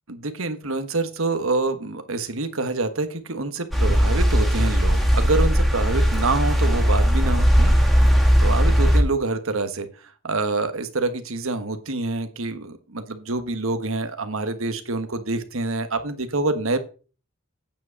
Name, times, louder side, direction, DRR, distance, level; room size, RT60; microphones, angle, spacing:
voice 1, 0.1-7.7 8.0-9.9 10.2-16.8, right 3 dB, 65° right, 9 dB, 1.4 m, -26 dB
sound 1, 3.7-9.0, equal, ahead, 2.4 m, -18 dB
9.1 x 5.3 x 7.0 m, 0.36 s
head